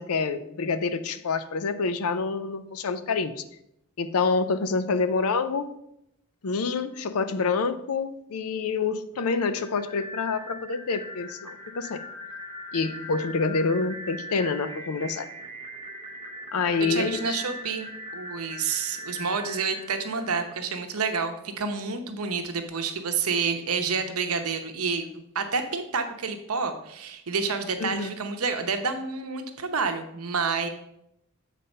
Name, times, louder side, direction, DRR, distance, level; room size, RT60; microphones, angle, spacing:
voice 1, 0.0-3.4 4.0-5.7 6.4-12.0 12.7-15.3 16.5-17.4 27.8-28.1, left 4 dB, 75° left, 11 dB, 0.5 m, -27 dB
sound 1, 9.1-21.0, equal, 25° right, 0.9 m, -40 dB
voice 2, 16.8-17.9 18.1-30.7, right 5 dB, 75° right, 6 dB, 0.9 m, -29 dB
7.4 x 4.1 x 5.4 m, 0.79 s
head